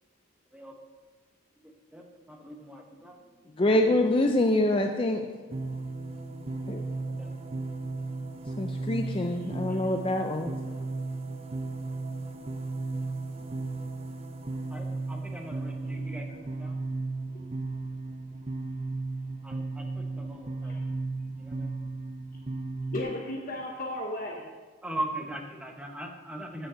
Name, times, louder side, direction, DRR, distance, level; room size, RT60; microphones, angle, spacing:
voice 1, 2.4-3.1 3.8-4.0 4.2-4.3 14.7-16.7 19.4-19.8 20.2-20.7 21.4-21.7 24.8-26.7, right 1 dB, 5° right, 2 dB, 0.9 m, -39 dB
voice 2, 3.6-5.3 6.7-6.8 8.6-10.5, left 1 dB, 25° left, 4 dB, 0.4 m, -25 dB
sound 1, 5.5-23.0, right 3 dB, 30° right, 0.5 m, -35 dB
voice 3, 9.4-9.9 16.3-16.4 16.6-16.7 20.6-20.8 22.9-24.4, left 1 dB, 45° left, -1 dB, 1.0 m, -36 dB
14.0 x 5.2 x 5.0 m, 1.4 s
head